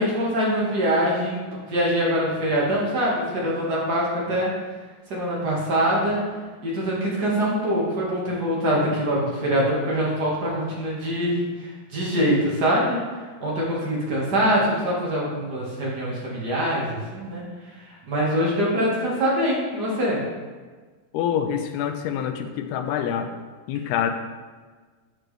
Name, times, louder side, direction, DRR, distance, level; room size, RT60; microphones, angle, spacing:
voice 1, 0.0-1.4 1.7-4.5 5.1-6.2 6.6-13.0 13.4-17.4 17.9-20.2, equal, 55° right, -5 dB, 1.1 m, -24 dB
voice 2, 21.1-23.3 23.7-24.1, left 9 dB, 90° left, 7 dB, 2.6 m, -26 dB
10.5 x 6.1 x 3.3 m, 1.4 s
omnidirectional pair, 4.6 m